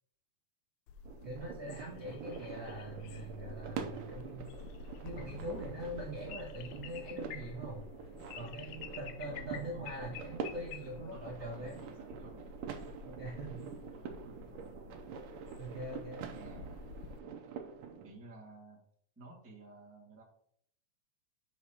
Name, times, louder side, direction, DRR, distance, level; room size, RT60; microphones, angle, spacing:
sound 1, 0.9-17.2, left 5 dB, 80° left, 1.7 m, -49 dB
sound 2, 1.0-18.1, right 6 dB, 75° right, 2.2 m, -46 dB
voice 1, 1.2-4.5 5.0-7.8 8.3-11.8 13.0-13.6 15.6-16.4, right 1 dB, 50° right, -4 dB, 1.1 m, -43 dB
voice 2, 9.2-10.2 11.1-12.5 13.9-15.1 16.4-16.7 18.0-18.8 19.1-20.2, right 2 dB, 10° right, -4 dB, 0.9 m, -54 dB
8.0 x 6.5 x 2.9 m, 0.66 s
omnidirectional pair, 4.0 m